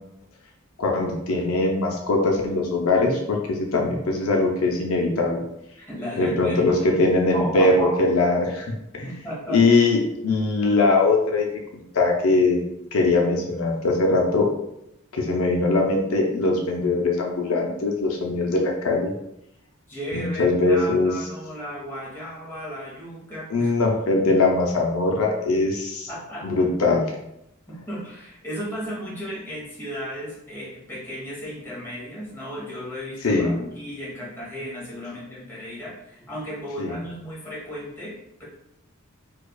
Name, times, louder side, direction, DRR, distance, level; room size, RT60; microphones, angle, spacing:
voice 1, 0.8-5.4 6.2-8.7 8.9-9.1 9.5-11.5 11.7-12.6 12.9-14.5 15.1-19.1 20.1-21.1 23.5-26.1 26.4-27.0 33.2-33.5 36.8-37.0, left 3 dB, 80° left, 1 dB, 0.5 m, -21 dB
voice 2, 5.8-7.0 7.3-8.0 9.0-9.6 19.9-23.7 26.1-26.7 27.7-38.4, equal, 10° left, -7 dB, 1.1 m, -34 dB
4.5 x 2.3 x 2.3 m, 0.83 s
head